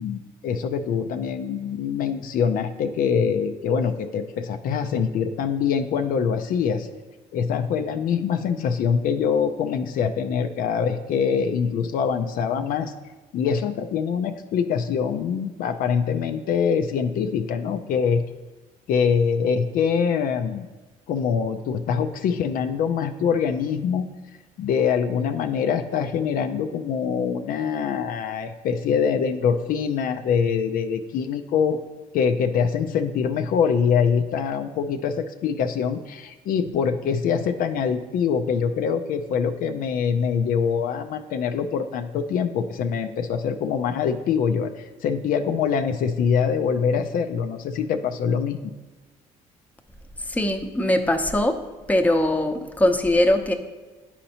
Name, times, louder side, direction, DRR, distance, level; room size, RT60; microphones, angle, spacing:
voice 1, 0.0-6.9 7.3-12.9 13.3-18.2 18.9-20.7 21.1-24.1 24.6-31.8 32.1-48.6, left 6 dB, 70° left, 6 dB, 0.4 m, -24 dB
voice 2, 50.3-51.6 51.9-53.5, left 1 dB, 10° left, 5 dB, 0.7 m, -21 dB
9.8 x 4.2 x 2.8 m, 1.3 s
cardioid pair, 80°, 15 cm